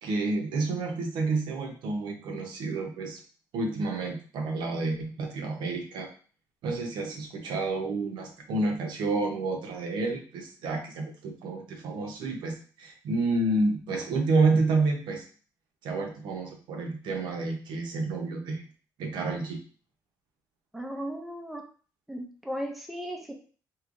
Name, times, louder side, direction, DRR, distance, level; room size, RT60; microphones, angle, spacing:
voice 1, 0.0-3.2 3.5-6.1 6.6-15.2 15.8-18.6 19.0-19.6, right 3 dB, 80° right, 2 dB, 0.8 m, -29 dB
voice 2, 20.7-21.6 22.1-23.3, equal, ahead, 1 dB, 0.5 m, -36 dB
3.1 x 2.9 x 2.5 m, 0.40 s
cardioid pair, 125°, 8 cm